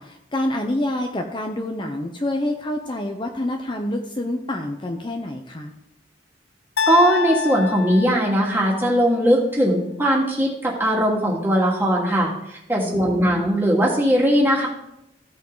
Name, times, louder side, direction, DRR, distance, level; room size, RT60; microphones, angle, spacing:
voice 1, 0.0-5.7 12.8-13.4, left 1 dB, 30° left, 3 dB, 0.7 m, -27 dB
sound 1, 6.8-8.9, left 6 dB, 75° left, 0.5 m, -26 dB
voice 2, 6.9-14.7, equal, 15° right, -3 dB, 2.3 m, -19 dB
15.0 x 5.4 x 3.9 m, 0.84 s
head